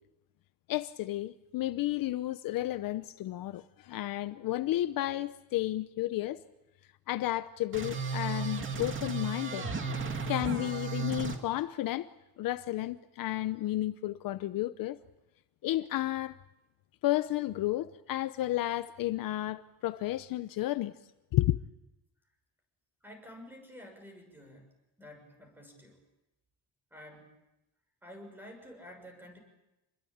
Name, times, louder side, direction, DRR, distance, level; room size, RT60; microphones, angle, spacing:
voice 1, 0.7-6.4 7.1-9.7 10.3-12.1 12.4-15.0 15.6-16.4 17.0-20.9 21.3-21.6, left 15 dB, 60° left, 0.9 m, -32 dB
sound 1, 7.7-11.4, right 4 dB, 30° right, 2.5 m, -34 dB
voice 2, 23.0-24.7 25.0-26.0 26.9-27.4 28.0-29.4, equal, 5° right, 6.5 m, -50 dB
27.5 x 21.5 x 8.7 m
cardioid pair, 165°, 39 cm